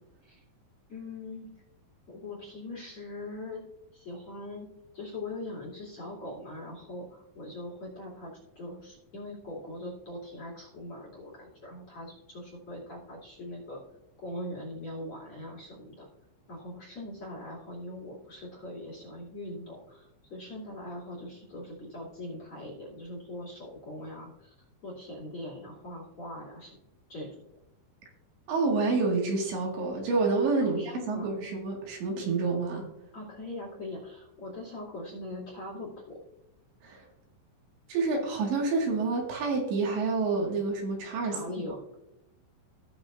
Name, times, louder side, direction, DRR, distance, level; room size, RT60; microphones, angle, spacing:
voice 1, 0.9-1.5 2.1-3.6 3.9-4.7 4.9-13.8 14.2-16.1 16.5-24.5 24.8-26.8 27.1-27.3 30.6-31.3 33.1-36.2 41.2-41.8, left 1 dB, 35° left, -3 dB, 3.0 m, -41 dB
voice 2, 28.5-32.8 36.8-37.1 37.9-41.7, right 3 dB, 75° right, -1 dB, 4.1 m, -28 dB
18.0 x 6.3 x 2.6 m, 0.88 s
omnidirectional pair, 5.4 m